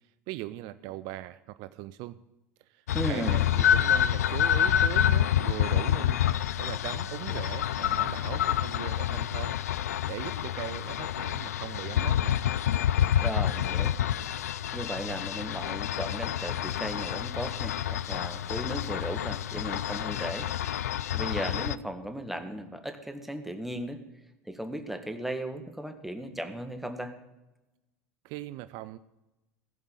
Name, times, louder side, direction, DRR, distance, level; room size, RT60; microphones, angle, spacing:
voice 1, 0.3-2.2 2.7-6.2 6.6-9.6 10.1-12.4 14.1-14.2 28.2-29.0, right 16 dB, 55° right, 14 dB, 0.5 m, -40 dB
sound 1, 2.9-21.8, left 10 dB, 85° left, 0.4 m, -28 dB
voice 2, 2.9-3.4 13.2-14.0 14.7-24.0 24.4-27.1, right 1 dB, ahead, 6 dB, 1.7 m, -36 dB
15.5 x 5.4 x 8.9 m, 0.99 s
hypercardioid pair, 90°, 8 cm